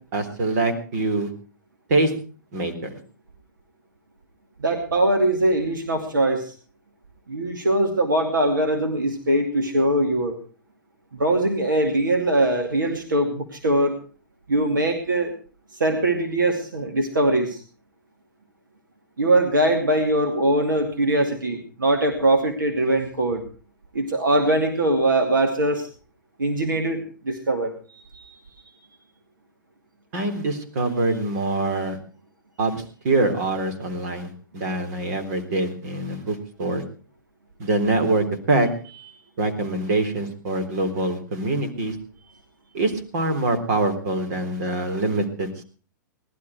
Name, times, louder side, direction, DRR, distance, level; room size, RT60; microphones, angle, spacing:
voice 1, 0.1-1.3 1.9-2.1 2.5-2.9 30.1-32.0 32.6-36.8 37.6-38.7 39.4-41.9 42.7-45.6, right 2 dB, 55° right, 6 dB, 3.8 m, -24 dB
voice 2, 4.6-6.5 7.3-10.4 11.1-13.9 14.5-15.3 15.8-17.6 19.2-23.4 23.9-25.9 26.4-28.3, right 1 dB, 85° right, 4 dB, 2.5 m, -22 dB
19.0 x 12.5 x 4.6 m, 0.38 s
hypercardioid pair, 110°, 10 cm